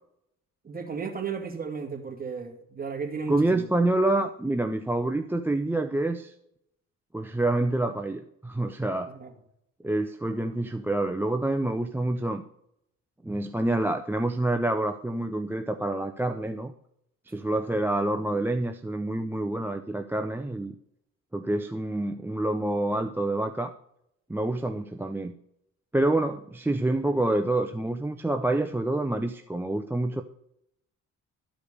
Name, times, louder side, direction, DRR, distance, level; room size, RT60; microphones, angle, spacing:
voice 1, 0.6-3.7 9.1-9.3 17.3-17.4, right 5 dB, 30° right, 2.2 m, -34 dB
voice 2, 3.3-6.3 7.1-9.1 9.8-12.4 13.2-16.7 17.3-20.7 21.3-23.7 24.3-25.3 25.9-30.2, right 2 dB, 5° right, 0.6 m, -27 dB
12.5 x 5.1 x 6.7 m
cardioid pair, 90°, 30 cm